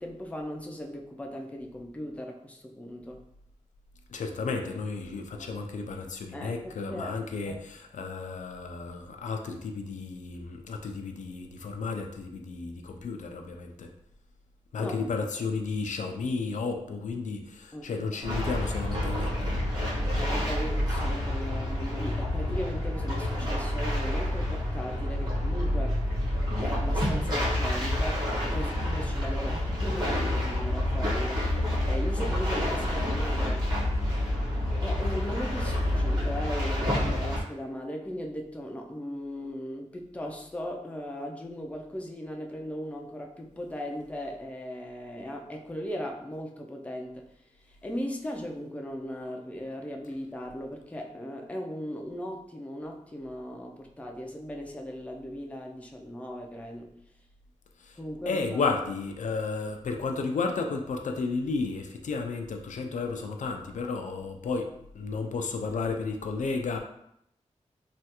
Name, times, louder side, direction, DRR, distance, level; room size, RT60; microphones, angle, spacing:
voice 1, 0.0-3.2 5.3-5.6 6.3-7.2 7.5-7.6 14.8-15.0 17.7-18.2 19.9-26.0 26.6-28.3 28.5-33.6 34.8-47.2 47.8-56.9 58.0-58.8, equal, 10° left, 1 dB, 0.4 m, -38 dB
voice 2, 4.1-13.9 14.7-19.6 57.8-58.0 58.3-66.8, left 4 dB, 85° left, 4 dB, 0.4 m, -33 dB
sound 1, 18.2-37.4, left 1 dB, 35° right, 1.3 m, -28 dB
3.3 x 2.3 x 2.8 m, 0.76 s
wide cardioid pair, 125°, 12 cm